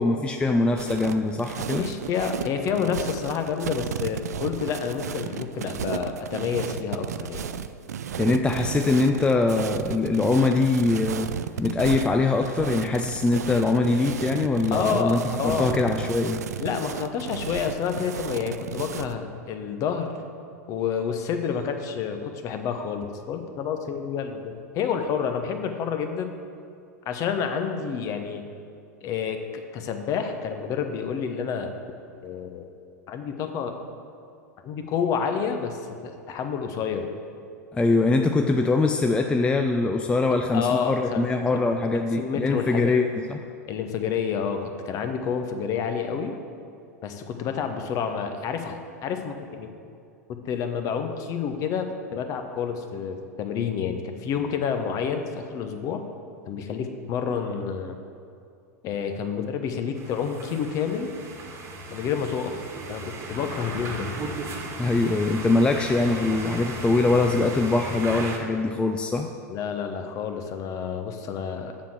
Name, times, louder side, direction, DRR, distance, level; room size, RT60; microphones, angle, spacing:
voice 1, 0.0-1.9 8.2-11.3 11.6-16.4 37.7-43.4 64.8-69.3, left 3 dB, 10° left, 4 dB, 0.4 m, -23 dB
sound 1, 0.7-19.1, right 8 dB, 70° right, 0.4 m, -33 dB
voice 2, 1.8-7.5 14.7-15.7 16.6-20.2 20.7-26.3 27.0-28.4 29.0-31.7 32.2-32.7 33.1-33.7 34.6-37.1 40.5-41.6 42.2-42.9 43.7-46.3 47.0-49.7 50.3-51.9 52.1-56.0 56.5-58.0 58.8-61.1 61.9-62.6 62.9-64.1 69.5-71.7, left 7 dB, 40° left, 6 dB, 1.0 m, -29 dB
sound 2, 59.9-68.4, right 2 dB, 30° right, 1.5 m, -36 dB
7.4 x 6.6 x 7.4 m, 2.4 s
figure-of-eight pair, 85°, 9 cm